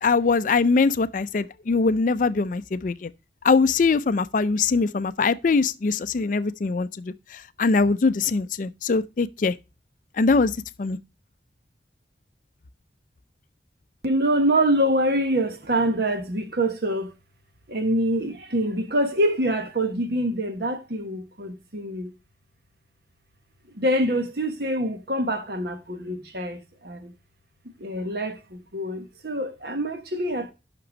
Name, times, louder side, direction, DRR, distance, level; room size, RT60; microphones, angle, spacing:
voice 1, 0.0-3.1 3.4-9.5 10.2-10.5 10.8-11.0, left 4 dB, 45° left, 0.4 m, -22 dB
voice 2, 14.0-17.1 17.7-22.1 23.7-27.1 27.8-30.5, right 1 dB, 60° right, 1.3 m, -25 dB
6.0 x 6.0 x 6.3 m
head